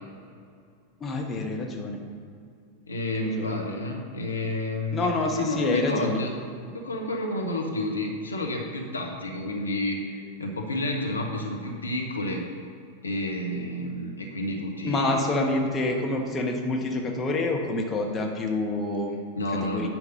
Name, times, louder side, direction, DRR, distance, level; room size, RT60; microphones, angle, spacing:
voice 1, 1.0-2.0 3.1-3.5 4.9-6.2 14.8-19.2 19.6-19.9, left 2 dB, 20° left, 1 dB, 1.2 m, -27 dB
voice 2, 2.9-5.1 5.4-6.3 6.7-12.4 13.0-15.2 19.4-19.9, left 1 dB, 75° left, 1 dB, 1.1 m, -30 dB
9.9 x 5.3 x 5.5 m, 2.3 s
figure-of-eight pair, 90°, 0 cm